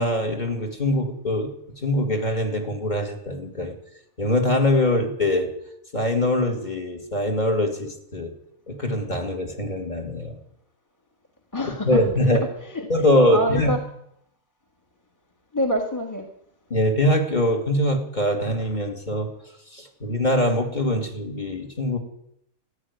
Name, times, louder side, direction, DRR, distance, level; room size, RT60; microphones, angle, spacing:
voice 1, 0.0-1.5 1.8-3.7 4.2-5.5 5.9-8.3 8.7-10.4 11.8-12.4 12.9-13.7 16.7-19.3 19.7-22.0, left 1 dB, 30° left, 2 dB, 2.5 m, -23 dB
voice 2, 11.5-13.8 15.5-16.3, equal, 15° left, 3 dB, 1.5 m, -27 dB
14.5 x 10.0 x 9.5 m, 0.76 s
omnidirectional pair, 1.5 m